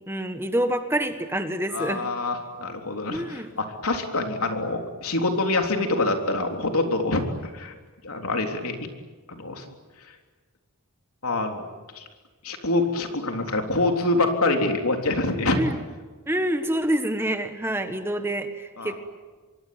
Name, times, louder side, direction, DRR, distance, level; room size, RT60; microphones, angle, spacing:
voice 1, 0.0-2.0 3.1-3.5 15.6-15.8 16.3-19.0, right 1 dB, 10° right, 8 dB, 1.5 m, -27 dB
voice 2, 1.7-7.7 8.0-8.9 9.3-9.7 11.2-11.7 12.0-12.1 12.4-15.6 18.8-18.9, left 2 dB, 75° left, 4 dB, 3.6 m, -25 dB
25.5 x 23.5 x 9.5 m, 1.4 s
head